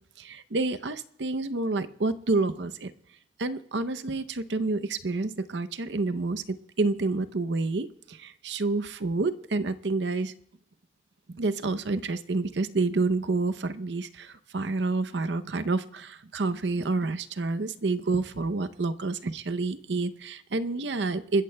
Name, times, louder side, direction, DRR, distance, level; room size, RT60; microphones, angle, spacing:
voice 1, 0.2-2.9 3.4-10.3 11.3-21.4, right 3 dB, 80° right, 12 dB, 0.7 m, -29 dB
29.0 x 14.5 x 2.3 m, 0.77 s
head